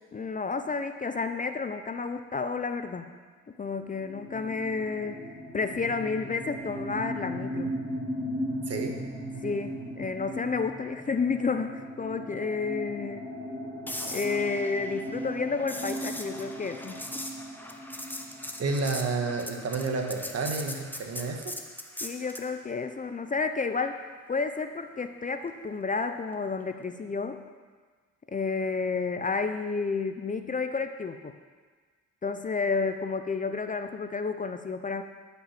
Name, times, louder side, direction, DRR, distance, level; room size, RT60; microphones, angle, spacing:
voice 1, 0.1-3.1 3.6-5.3 5.5-7.8 9.4-13.3 14.0-17.0 22.0-24.0 24.3-27.5 28.3-31.4 32.2-35.0, left 4 dB, 25° left, 8 dB, 0.6 m, -31 dB
sound 1, 3.9-19.5, equal, 75° left, 2.5 m, -38 dB
sound 2, 13.9-22.5 26.7-26.9, left 1 dB, 5° left, 1.0 m, -40 dB
voice 2, 18.6-21.6, right 4 dB, 55° right, 3 dB, 1.6 m, -30 dB
12.5 x 6.0 x 5.9 m, 1.5 s
cardioid pair, 90°, 30 cm